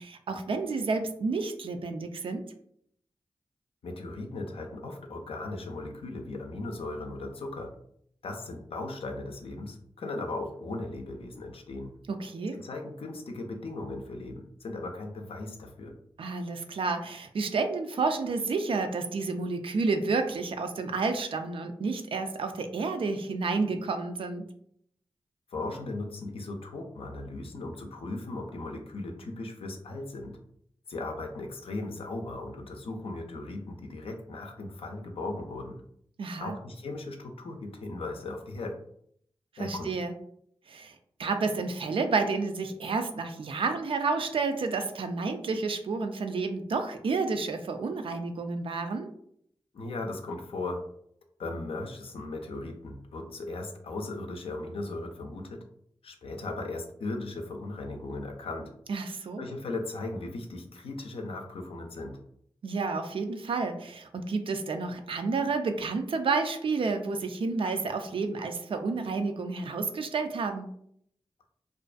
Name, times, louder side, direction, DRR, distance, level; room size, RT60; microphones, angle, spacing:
voice 1, 0.0-2.4 12.1-12.6 16.2-24.4 36.2-36.5 39.6-40.1 40.7-49.1 58.9-59.4 62.6-70.7, right 4 dB, 65° right, 7 dB, 0.4 m, -30 dB
voice 2, 3.8-7.7 8.2-11.9 12.5-15.9 25.5-30.4 30.9-35.8 36.4-38.8 39.6-39.9 49.7-50.8 51.4-55.6 56.0-58.7 59.4-62.2, left 2 dB, 75° left, 3 dB, 0.4 m, -37 dB
2.4 x 2.2 x 2.4 m, 0.68 s
cardioid pair, 50°, 10 cm